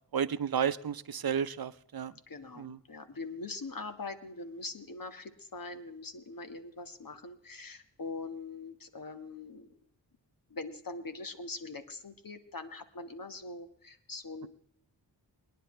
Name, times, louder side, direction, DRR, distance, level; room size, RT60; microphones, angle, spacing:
voice 1, 0.1-2.1 2.6-2.8, right 8 dB, 55° right, 14 dB, 0.8 m, -32 dB
voice 2, 2.3-9.7 10.5-14.5, left 3 dB, 50° left, 9 dB, 1.8 m, -42 dB
23.0 x 10.5 x 3.3 m, 0.67 s
cardioid pair, 50°, 43 cm